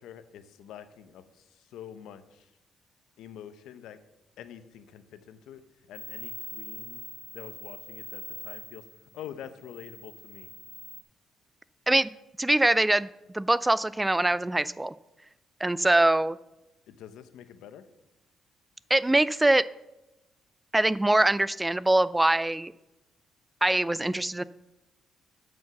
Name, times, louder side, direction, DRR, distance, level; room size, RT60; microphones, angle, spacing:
voice 1, 0.0-2.5 3.2-4.0 4.4-5.6 5.9-7.1 7.3-8.8 9.1-10.5 16.9-17.8, left 9 dB, 85° left, 12 dB, 0.7 m, -46 dB
sound 1, 5.9-11.0, left 2 dB, 35° left, 1.3 m, -43 dB
voice 2, 12.4-13.1 13.3-14.9 15.6-16.4 18.9-19.7 20.7-22.7 23.6-24.4, right 1 dB, 10° right, 17 dB, 0.3 m, -23 dB
9.5 x 5.3 x 6.9 m, 0.94 s
cardioid pair, 90°, 0 cm